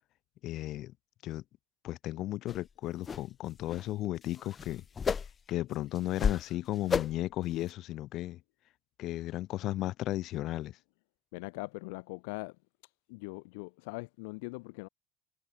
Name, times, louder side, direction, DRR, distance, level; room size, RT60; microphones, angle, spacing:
voice 1, 0.4-0.9 1.2-1.4 1.8-4.8 5.5-8.4 9.0-10.8, left 15 dB, 55° left, 2.1 m, -35 dB
sound 1, 2.5-2.6 3.0-3.2 3.6-3.8 4.2-5.5 5.9-6.5 6.9-7.3 7.7-7.8, left 6 dB, 30° left, 1.1 m, -32 dB
voice 2, 11.3-12.5 13.1-14.9, left 29 dB, 70° left, 1.1 m, -41 dB
hypercardioid pair, 85°, 0 cm